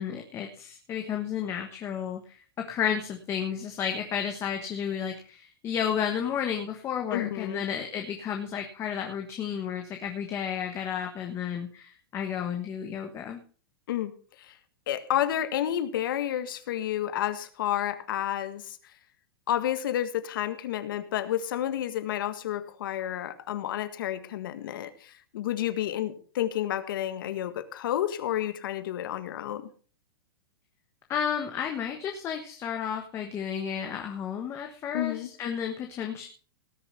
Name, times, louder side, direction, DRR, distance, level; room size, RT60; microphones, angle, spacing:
voice 1, 0.0-13.4 31.1-36.3, left 8 dB, 20° left, 4 dB, 1.3 m, -32 dB
voice 2, 7.1-7.6 13.9-14.1 14.4-14.5 14.9-18.8 19.5-29.7 34.9-35.3, left 12 dB, 65° left, 11 dB, 1.7 m, -30 dB
18.5 x 6.8 x 5.7 m, 0.42 s
supercardioid pair, 155°, 12 cm